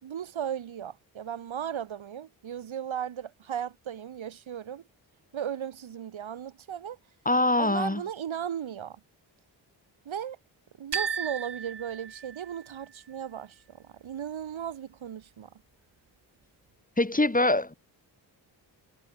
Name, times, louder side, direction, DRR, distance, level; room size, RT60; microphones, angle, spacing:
voice 1, 0.0-4.8 5.3-7.0 7.6-9.0 10.0-10.4 10.8-15.5, right 9 dB, 75° right, 6.1 m, -36 dB
voice 2, 7.2-8.0 17.0-17.7, left 2 dB, 15° left, 4.6 m, -23 dB
sound 1, 10.9-12.8, right 6 dB, 60° right, 7.2 m, -35 dB
supercardioid pair, 55°, 47 cm